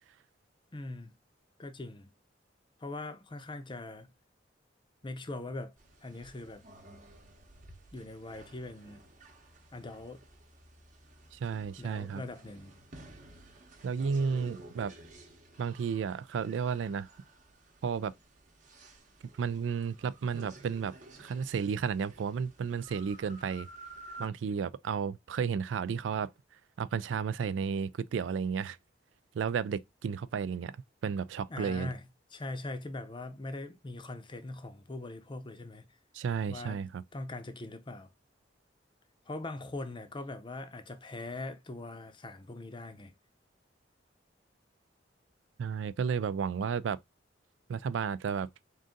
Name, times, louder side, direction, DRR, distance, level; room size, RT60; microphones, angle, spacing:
voice 1, 0.7-1.1 1.6-2.1 2.8-4.1 5.0-5.7 6.0-6.7 7.9-9.0 9.7-10.2 11.8-12.8 31.5-35.9 36.5-36.9 37.1-38.1 39.3-43.1, left 2 dB, 25° left, 0.6 m, -41 dB
sound 1, 5.8-24.3, right 1 dB, 45° right, 0.9 m, -53 dB
voice 2, 11.3-12.2 13.8-14.9 15.6-17.1 17.8-18.1 19.4-20.9 21.2-23.7 24.2-26.3 26.8-28.8 29.3-30.7 31.0-31.9 36.1-37.0 45.6-47.0 47.7-48.5, right 6 dB, 85° right, 0.3 m, -32 dB
3.7 x 2.6 x 3.7 m
head